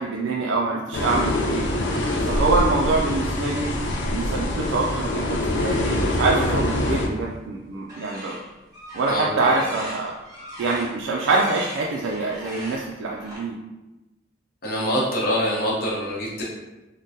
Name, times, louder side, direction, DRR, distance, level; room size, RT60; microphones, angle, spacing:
voice 1, 0.0-1.7 2.2-3.7 4.1-8.4 8.9-10.1 10.6-13.6, right 3 dB, 80° right, -2 dB, 0.3 m, -25 dB
sound 1, 0.9-7.1, left 1 dB, 70° left, 0.4 m, -24 dB
sound 2, 6.2-7.3 7.8-13.4, equal, 20° right, 0.9 m, -40 dB
voice 2, 9.1-9.5 14.6-16.4, equal, 55° left, -5 dB, 0.9 m, -25 dB
3.6 x 2.1 x 2.6 m, 1.1 s
head